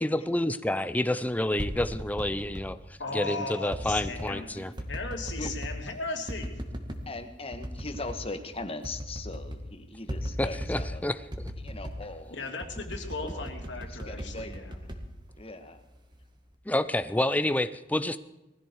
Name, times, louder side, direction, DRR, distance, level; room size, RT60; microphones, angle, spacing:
voice 1, 0.0-2.8 3.1-4.7 10.4-11.5 13.2-13.3 16.7-18.2, left 1 dB, 10° left, 13 dB, 0.6 m, -29 dB
sound 1, 1.3-2.7 3.7-4.3 4.8-5.8 6.3-7.1 7.5-8.2 8.5-8.6 8.8-9.7 10.1-11.0 11.3-12.1 12.6-15.7 16.1-16.5, equal, 25° right, 2.0 m, -37 dB
voice 2, 3.0-4.6 4.9-6.5 12.3-14.8, left 3 dB, 80° left, 4 dB, 2.9 m, -37 dB
voice 3, 7.0-11.0 11.6-12.6 13.2-13.5 13.9-14.7 15.4-15.8 16.7-16.9, left 2 dB, 30° left, 8 dB, 1.6 m, -40 dB
20.0 x 15.0 x 4.7 m, 1.0 s
head